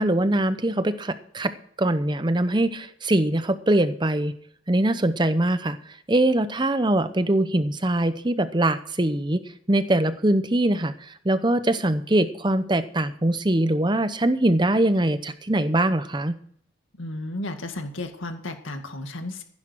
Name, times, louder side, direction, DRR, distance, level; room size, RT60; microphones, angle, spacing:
voice 1, 0.0-1.5 1.8-4.3 4.7-5.8 6.1-9.4 9.7-10.9 11.2-16.4, right 1 dB, 25° right, 12 dB, 0.8 m, -22 dB
voice 2, 17.0-19.4, left 2 dB, 85° left, 6 dB, 2.1 m, -33 dB
15.5 x 10.5 x 4.6 m, 0.66 s
head